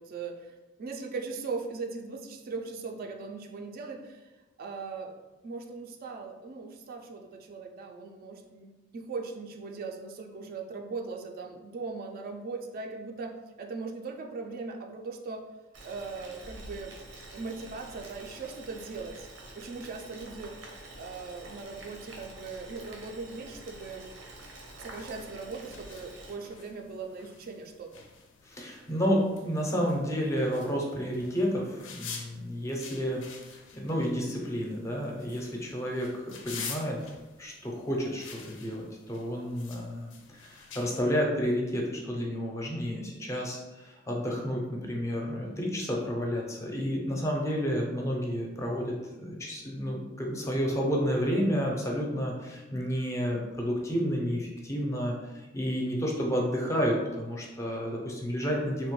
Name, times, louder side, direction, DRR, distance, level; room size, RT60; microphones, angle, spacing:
voice 1, 0.0-4.3 4.6-5.1 5.4-15.4 15.8-17.0 17.3-19.3 19.6-20.6 21.0-24.1 24.8-28.0, right 4 dB, 50° right, 3 dB, 0.3 m, -39 dB
Boiling, 15.7-26.3, right 1 dB, 85° right, 0.7 m, -47 dB
sound 1, 23.7-41.0, left 5 dB, 75° left, 0.4 m, -48 dB
voice 2, 28.5-33.2 33.5-37.0 37.4-40.1 40.4-58.9, equal, 15° left, -1 dB, 0.5 m, -30 dB
3.0 x 2.1 x 3.0 m, 1.1 s
head